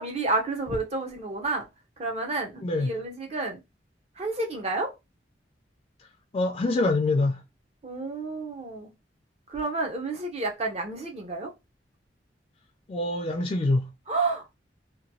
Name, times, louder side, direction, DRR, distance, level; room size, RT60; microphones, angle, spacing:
voice 1, 0.0-1.6 2.0-3.6 4.2-4.9 7.8-8.9 9.5-11.5 14.1-14.6, right 3 dB, 35° right, 0.6 m, -30 dB
voice 2, 6.3-7.4 12.9-13.9, left 2 dB, 30° left, 0.3 m, -25 dB
2.9 x 2.2 x 2.6 m
head